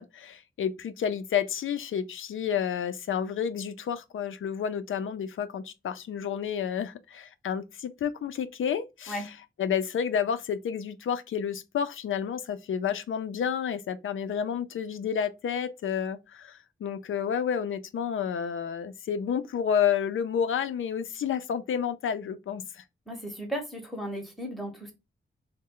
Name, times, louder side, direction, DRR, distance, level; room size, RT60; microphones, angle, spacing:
voice 1, 0.0-22.8, left 8 dB, 75° left, 0.4 m, -30 dB
voice 2, 23.1-24.9, equal, ahead, 0.7 m, -35 dB
3.2 x 2.1 x 3.6 m
wide cardioid pair, 170°, 21 cm